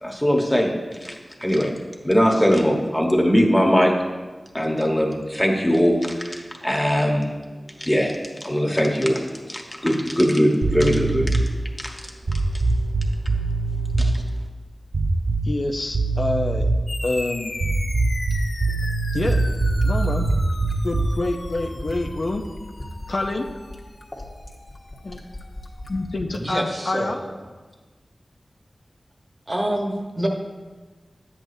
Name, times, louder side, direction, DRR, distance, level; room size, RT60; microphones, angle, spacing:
voice 1, 0.0-0.7 1.0-1.7 2.0-4.0 4.5-7.3 7.8-11.4 11.8-11.9 14.0-14.2, equal, 10° left, 0 dB, 1.2 m, -21 dB
sound 1, 10.6-11.6 12.2-14.2 14.9-15.7 15.9-16.9 17.6-21.2, right 2 dB, 60° right, 0.5 m, -22 dB
voice 2, 15.4-16.6 17.0-17.5 19.1-19.4 19.8-20.3 20.8-22.4 23.1-23.5 25.0-25.2 25.9-27.2, left 2 dB, 55° left, 3 dB, 0.6 m, -26 dB
sound 2, 16.9-25.8, left 2 dB, 80° left, 0.9 m, -38 dB
Fill (with liquid), 18.3-26.4 27.7-27.8, left 1 dB, 30° left, 1.3 m, -38 dB
voice 3, 26.4-27.2 29.5-30.3, right 1 dB, 35° right, 1 dB, 1.1 m, -26 dB
10.0 x 8.2 x 2.7 m, 1.3 s
wide cardioid pair, 85°, 0 cm